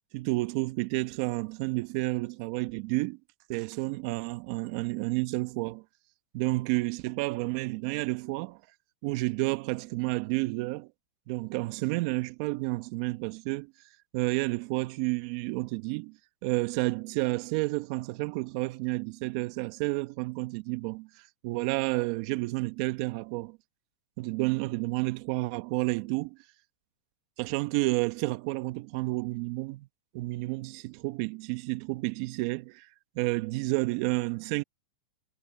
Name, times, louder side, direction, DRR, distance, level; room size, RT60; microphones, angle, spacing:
voice 1, 0.1-3.2 3.5-5.8 6.3-8.6 9.0-10.9 11.3-13.7 14.1-23.6 24.2-26.4 27.4-29.9 30.1-32.9 33.1-34.6, right 22 dB, 45° right, 1.1 m, -30 dB
supercardioid pair, 155°, 4 cm